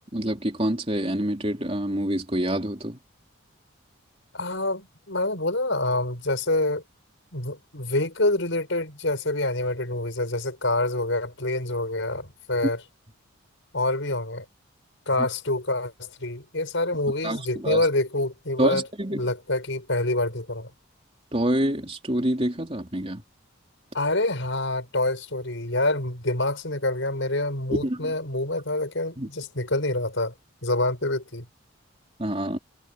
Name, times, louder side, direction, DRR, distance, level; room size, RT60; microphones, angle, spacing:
voice 1, 0.1-3.0 17.2-17.8 18.6-19.3 21.3-23.2 27.7-28.1 29.2-29.3 32.2-32.6, right 1 dB, 30° right, 3.6 m, -27 dB
voice 2, 4.3-6.8 7.3-12.8 13.7-14.4 15.1-18.9 19.1-20.7 23.9-30.3 30.6-31.5, left 2 dB, 65° left, 6.1 m, -26 dB
head